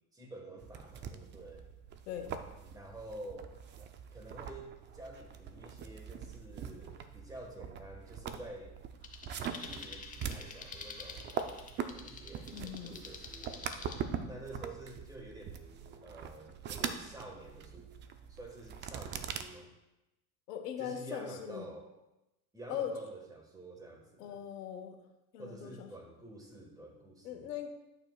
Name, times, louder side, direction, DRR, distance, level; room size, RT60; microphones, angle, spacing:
voice 1, 0.1-1.7 2.6-8.8 9.6-11.4 11.9-13.6 14.3-19.7 20.8-21.9 22.5-24.4 25.4-27.5, right 1 dB, 10° right, 2 dB, 1.4 m, -49 dB
sound 1, 0.6-19.4, right 7 dB, 25° right, 0.4 m, -43 dB
sound 2, 9.0-14.0, left 5 dB, 15° left, 0.8 m, -48 dB
voice 2, 12.5-13.0 20.5-21.7 22.7-22.9 24.2-25.0 25.3-25.9 27.2-27.7, left 9 dB, 85° left, 5 dB, 1.2 m, -40 dB
8.9 x 6.5 x 2.3 m, 0.96 s
hypercardioid pair, 105°, 47 cm